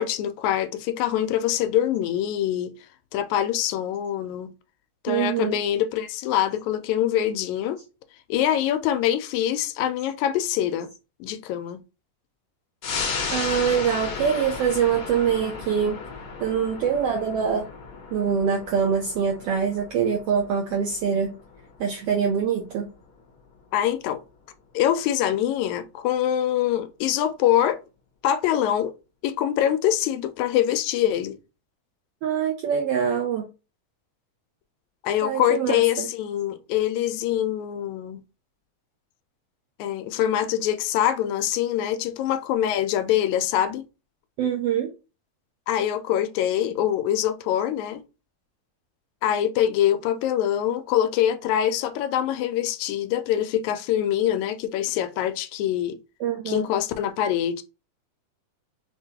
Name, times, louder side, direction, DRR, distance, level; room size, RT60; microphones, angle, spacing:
voice 1, 0.0-2.7 3.1-4.5 5.0-7.8 8.3-10.9 11.2-11.8 23.7-24.2 24.7-27.8 28.2-28.9 29.2-31.4 35.0-38.2 39.8-43.8 45.7-48.0 49.2-56.0 56.5-57.6, left 11 dB, 80° left, 1.8 m, -24 dB
voice 2, 5.1-5.6 13.3-16.0 16.4-17.7 18.1-21.3 21.8-22.9 32.2-33.4 35.2-36.1 44.4-44.9 56.2-56.7, right 7 dB, 90° right, 1.3 m, -24 dB
sound 1, 12.8-23.8 24.2-24.3, left 5 dB, 65° left, 1.4 m, -35 dB
5.9 x 2.2 x 2.8 m
omnidirectional pair, 3.5 m